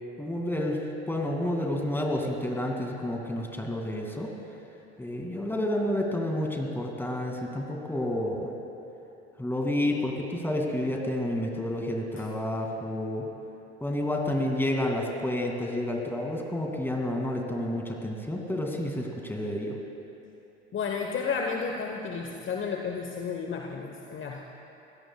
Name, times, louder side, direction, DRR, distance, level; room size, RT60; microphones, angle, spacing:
voice 1, 0.2-0.8 1.1-4.3 5.0-8.5 9.4-13.3 13.8-19.8, left 1 dB, 5° left, 1 dB, 2.4 m, -30 dB
voice 2, 20.7-24.4, left 5 dB, 35° left, 2 dB, 1.1 m, -32 dB
24.0 x 16.5 x 2.4 m, 3.0 s
figure-of-eight pair, 65°, 35 cm